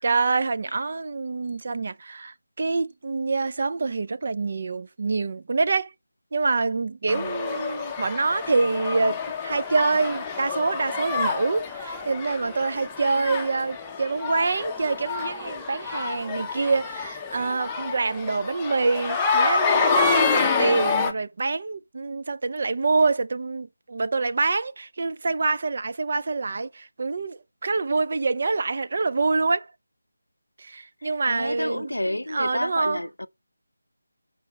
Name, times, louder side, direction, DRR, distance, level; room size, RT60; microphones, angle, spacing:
voice 1, 0.0-5.9 6.3-29.7 30.6-31.9 32.3-33.0, right 3 dB, 45° right, 0.5 m, -26 dB
voice 2, 7.1-7.4 31.0-33.3, left 1 dB, 85° left, 0.7 m, -31 dB
sound 1, 7.1-21.1, left 4 dB, 10° left, 0.7 m, -27 dB
5.8 x 4.8 x 4.1 m
figure-of-eight pair, 160°, 0 cm